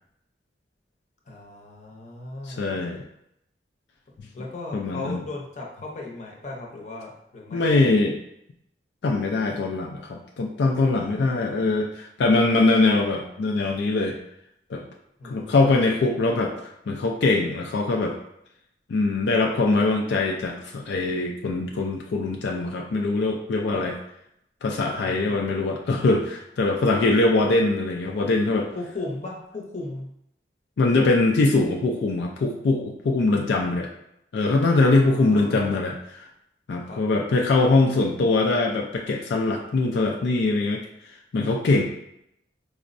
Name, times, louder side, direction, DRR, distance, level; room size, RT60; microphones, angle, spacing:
voice 1, 1.3-2.7 4.3-7.7 10.9-11.7 15.2-15.9 23.7-23.9 25.0-25.4 28.7-30.1 34.7-35.8 36.8-37.0, left 2 dB, 40° left, -2 dB, 0.7 m, -37 dB
voice 2, 2.5-3.0 4.7-5.2 7.5-8.2 9.0-14.2 14.7-14.8 15.2-18.1 18.9-24.0 24.6-28.7 30.8-33.9 34.3-36.3 36.7-40.8 41.1-41.8, left 2 dB, 80° left, 1 dB, 0.4 m, -22 dB
4.3 x 2.0 x 2.5 m, 0.77 s
head